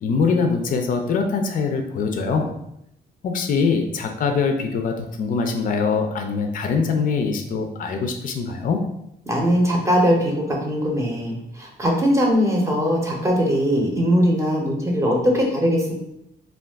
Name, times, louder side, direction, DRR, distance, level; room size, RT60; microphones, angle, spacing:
voice 1, 0.0-2.5 3.2-8.8, left 5 dB, 50° left, 4 dB, 0.4 m, -23 dB
voice 2, 9.3-15.9, equal, 15° right, -1 dB, 0.7 m, -20 dB
2.3 x 2.3 x 3.3 m, 0.80 s
cardioid pair, 120°, 18 cm